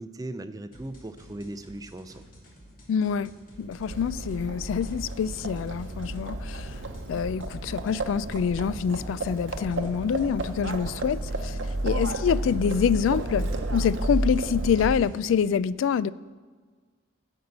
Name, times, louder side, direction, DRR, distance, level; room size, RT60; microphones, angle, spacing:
voice 1, 0.0-2.2, right 1 dB, 20° right, 10 dB, 0.4 m, -38 dB
sound 1, 0.7-15.5, equal, 45° left, 2.3 m, -52 dB
voice 2, 2.9-3.3 3.6-6.7 7.1-11.6 11.8-16.1, left 7 dB, 80° left, 18 dB, 0.3 m, -26 dB
Livestock farm animals working animals, 3.7-15.3, right 2 dB, 75° right, 0.8 m, -32 dB
12.0 x 5.4 x 7.9 m, 1.5 s
head